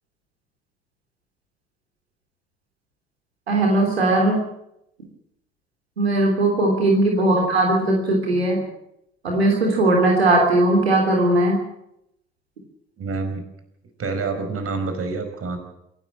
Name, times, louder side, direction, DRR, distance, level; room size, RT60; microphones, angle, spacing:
voice 1, 3.5-4.4 6.0-8.6 9.2-11.6, right 2 dB, 90° right, 0 dB, 3.4 m, -19 dB
voice 2, 13.0-13.4 14.0-15.6, right 4 dB, 50° right, 7 dB, 5.4 m, -27 dB
26.5 x 11.5 x 8.9 m, 0.80 s
hypercardioid pair, 50°, 30 cm